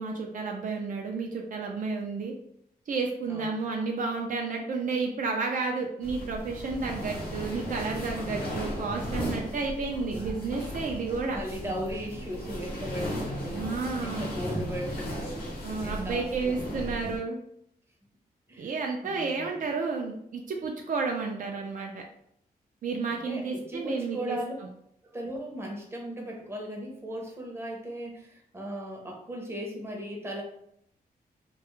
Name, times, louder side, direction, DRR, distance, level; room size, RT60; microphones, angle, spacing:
voice 1, 0.0-2.3 2.9-11.4 13.5-14.3 15.6-17.4 18.6-22.0 22.8-24.4, right 4 dB, 60° right, 1 dB, 0.4 m, -31 dB
voice 2, 3.3-3.6 11.3-13.7 14.0-15.6 15.8-17.0 18.5-19.5 23.1-24.5 25.1-30.4, equal, 15° right, 0 dB, 0.6 m, -37 dB
sound 1, 6.0-17.2, equal, 80° left, 0.7 m, -36 dB
2.2 x 2.0 x 2.9 m, 0.73 s
wide cardioid pair, 110°, 16 cm